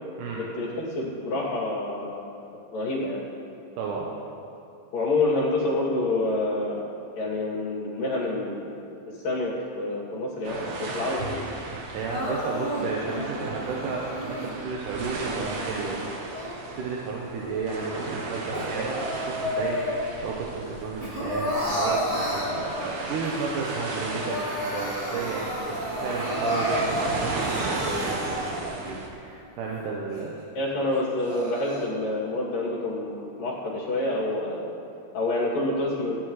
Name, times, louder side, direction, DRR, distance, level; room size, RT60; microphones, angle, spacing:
voice 1, 0.3-0.7 1.0-2.2 2.7-3.2 4.9-6.8 7.2-8.6 9.2-11.5 30.5-34.7 35.1-36.2, left 2 dB, 65° left, -6 dB, 4.3 m, -27 dB
voice 2, 3.8-4.1 11.9-16.0 16.8-19.8 20.2-22.5 23.1-30.4, right 4 dB, 70° right, -3 dB, 2.3 m, -32 dB
sound 1, 10.4-29.1, right 3 dB, 85° right, 3.2 m, -35 dB
Crying sobbing, 12.1-14.5 15.1-16.9 17.4-20.3 20.6-23.3 23.7-23.8 24.1-28.9 29.4-29.5 30.1-30.2 30.9-31.9, equal, 30° right, 3.8 m, -32 dB
18.0 x 11.5 x 3.2 m, 2.6 s
omnidirectional pair, 4.3 m